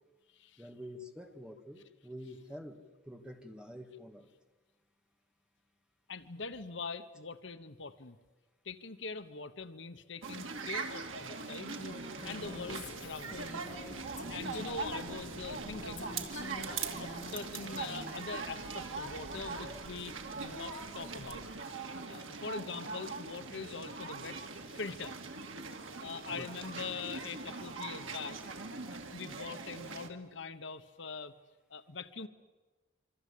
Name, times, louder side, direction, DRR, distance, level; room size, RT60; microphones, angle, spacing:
voice 1, 0.6-2.8 3.1-4.3 26.3-26.5, equal, 5° right, 4 dB, 2.0 m, -47 dB
voice 2, 6.1-8.2 8.6-11.8 12.2-13.7 14.1-16.1 16.6-21.5 22.1-25.2 26.0-28.4 28.9-31.3 31.7-32.3, left 4 dB, 70° left, 11 dB, 1.1 m, -43 dB
sound 1, 10.2-30.1, right 4 dB, 90° right, 2.6 m, -42 dB
Female speech woman speaking, 11.8-15.1 16.0-18.2, left 2 dB, 40° left, 3.8 m, -48 dB
sound 2, 12.4-21.4, equal, 25° right, 3.0 m, -52 dB
26.5 x 25.0 x 8.5 m, 1.2 s
head